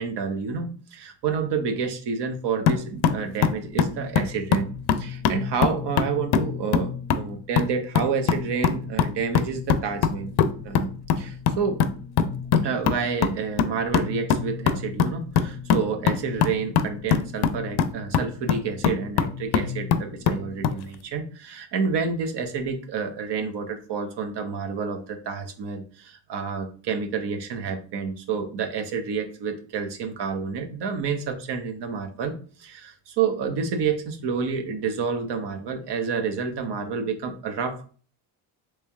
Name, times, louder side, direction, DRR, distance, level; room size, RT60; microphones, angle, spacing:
voice 1, 0.0-4.7 5.0-10.3 10.6-11.8 12.6-37.9, right 5 dB, 55° right, 6 dB, 1.0 m, -29 dB
sound 1, 2.7-20.8, left 7 dB, 55° left, 0.6 m, -25 dB
3.2 x 3.1 x 3.5 m, 0.40 s
supercardioid pair, 65°, 49 cm